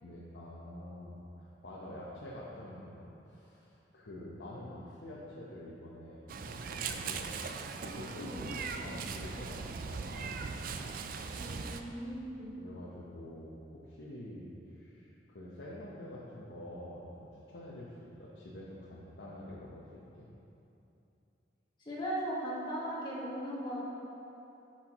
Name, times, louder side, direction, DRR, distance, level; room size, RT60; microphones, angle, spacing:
voice 1, 0.0-7.6 7.8-10.5 12.5-13.6 13.9-19.9 20.2-20.3, left 1 dB, 80° left, -7 dB, 0.9 m, -47 dB
Meow, 6.3-11.8, right 5 dB, 50° right, 0.4 m, -39 dB
voice 2, 8.2-8.5 11.4-12.5 21.8-23.8, right 1 dB, 25° left, -7 dB, 1.7 m, -38 dB
10.5 x 5.8 x 3.0 m, 2.9 s
head